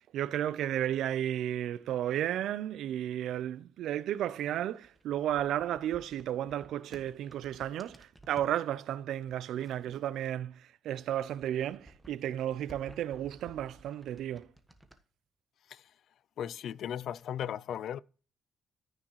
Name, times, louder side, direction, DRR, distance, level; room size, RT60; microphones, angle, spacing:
voice 1, 0.0-14.5, right 11 dB, 80° right, 0.5 m, -33 dB
sound 1, 4.7-8.6 9.3-10.6 10.9-15.0, right 1 dB, 10° right, 1.4 m, -56 dB
voice 2, 16.4-18.0, left 9 dB, 70° left, 0.3 m, -36 dB
14.0 x 6.3 x 3.1 m
cardioid pair, 90°, 0 cm